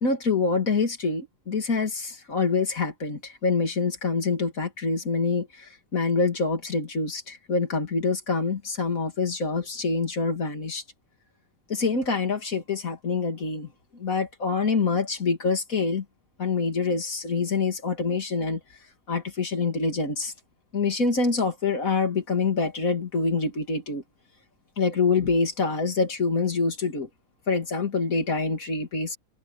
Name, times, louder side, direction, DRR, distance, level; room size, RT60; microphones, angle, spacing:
voice 1, 0.0-10.8 11.7-13.7 14.0-16.0 16.4-18.6 19.1-20.3 20.7-24.0 24.8-27.1 27.5-29.2, left 4 dB, 90° left, 3.1 m, -26 dB
omnidirectional pair, 1.4 m